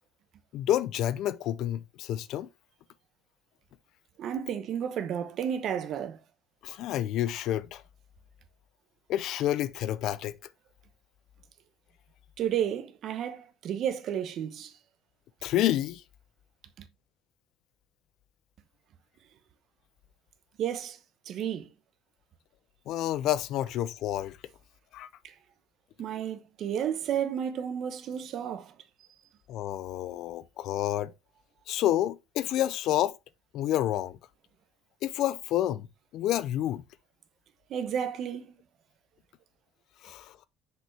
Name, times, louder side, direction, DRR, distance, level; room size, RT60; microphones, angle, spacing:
voice 1, 0.5-2.5 6.6-7.8 9.1-10.4 15.4-16.0 22.9-24.4 24.9-25.1 29.5-31.1 31.7-33.2 33.5-34.2 35.0-35.9 36.1-36.8 40.0-40.4, left 12 dB, 60° left, 0.5 m, -29 dB
voice 2, 4.2-6.2 12.4-14.7 16.8-16.9 20.6-21.0 21.3-21.7 25.2-25.3 26.0-28.7 37.7-38.5, right 9 dB, 50° right, 0.9 m, -32 dB
6.2 x 5.2 x 3.3 m
cardioid pair, 140°, 0 cm